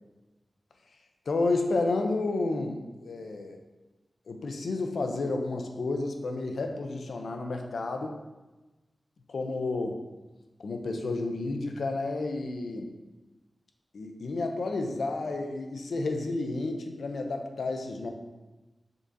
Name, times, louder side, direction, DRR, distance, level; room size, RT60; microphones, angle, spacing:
voice 1, 1.3-3.6 4.3-8.1 9.3-10.0 10.6-12.9 13.9-18.1, left 3 dB, 85° left, 3 dB, 0.5 m, -31 dB
5.1 x 3.8 x 2.7 m, 1.1 s
wide cardioid pair, 125°, 0 cm